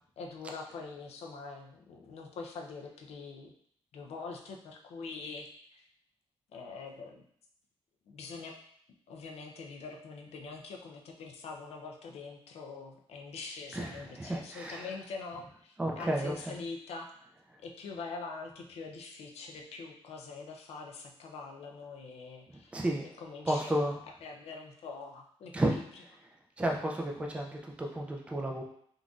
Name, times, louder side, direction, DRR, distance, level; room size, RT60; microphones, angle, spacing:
voice 1, 0.2-3.5 3.9-5.9 6.5-7.2 8.1-8.6 9.1-17.1 17.6-22.8 23.2-23.7 24.2-25.9, left 4 dB, 85° left, 2 dB, 0.5 m, -44 dB
voice 2, 13.7-14.9 15.8-16.5 22.7-23.1 23.5-24.0 25.5-25.7 26.6-28.6, right 1 dB, 10° right, 0 dB, 0.4 m, -32 dB
3.7 x 2.5 x 2.3 m, 0.64 s
cardioid pair, 115°, 10 cm